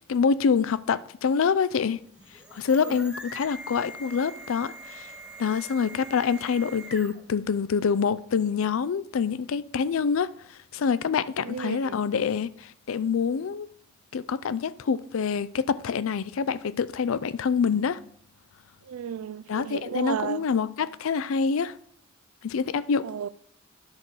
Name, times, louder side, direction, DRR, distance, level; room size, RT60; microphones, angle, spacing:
voice 1, 0.0-2.0 2.5-5.1 5.4-10.3 10.7-13.7 14.1-18.0 19.5-21.7 22.4-23.1, left 6 dB, 70° left, 0.4 m, -26 dB
sound 1, 2.1-7.4, right 2 dB, 5° right, 0.8 m, -43 dB
voice 2, 11.4-12.0 18.9-20.4 23.0-23.3, right 8 dB, 90° right, 0.4 m, -33 dB
10.5 x 4.0 x 6.2 m
head